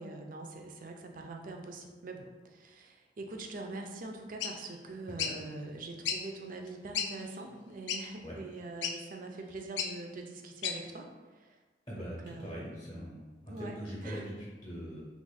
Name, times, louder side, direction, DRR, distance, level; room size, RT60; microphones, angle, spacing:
voice 1, 0.0-11.6 11.9-12.7 13.5-13.8 14.0-14.2, right 2 dB, 50° right, 3 dB, 0.4 m, -44 dB
sound 1, 4.4-4.5 5.2-5.4 6.1-6.2 6.7-6.8 6.9-7.1 7.9-8.0 8.8-9.0 9.8-9.9 10.6-10.8, left 7 dB, 80° left, 0.3 m, -32 dB
voice 2, 11.9-15.0, equal, 25° left, -5 dB, 0.7 m, -42 dB
2.9 x 2.4 x 3.9 m, 1.3 s
head